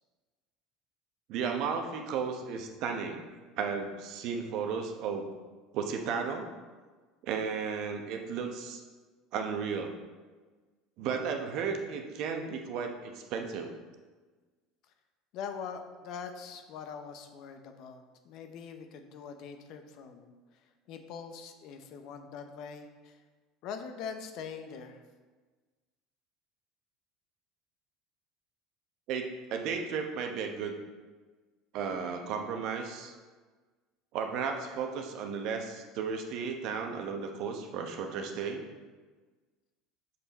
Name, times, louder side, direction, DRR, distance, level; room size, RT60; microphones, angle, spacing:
voice 1, 1.3-3.3 3.6-5.3 5.7-6.5 7.2-8.8 9.3-9.9 11.0-13.7 29.1-30.8 31.7-33.1 34.1-38.6, right 6 dB, 60° right, 4 dB, 0.9 m, -34 dB
voice 2, 15.3-20.3 20.9-23.2 23.6-25.0, left 6 dB, 60° left, 6 dB, 0.8 m, -43 dB
6.7 x 5.6 x 4.1 m, 1.4 s
hypercardioid pair, 75°, 0 cm